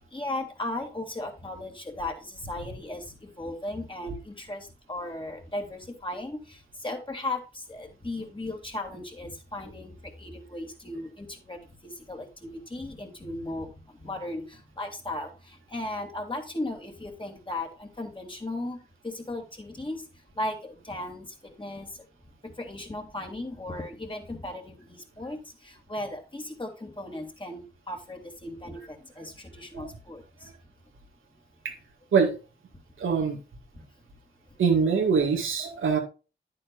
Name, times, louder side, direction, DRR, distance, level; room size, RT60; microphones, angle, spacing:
voice 1, 0.0-20.1 20.3-22.1 22.4-30.5 33.8-33.9, left 1 dB, 25° left, 2 dB, 2.7 m, -37 dB
voice 2, 33.0-33.4 34.6-36.0, right 5 dB, 85° right, 2 dB, 1.9 m, -23 dB
9.7 x 8.6 x 2.5 m, 0.31 s
cardioid pair, 55°, 20 cm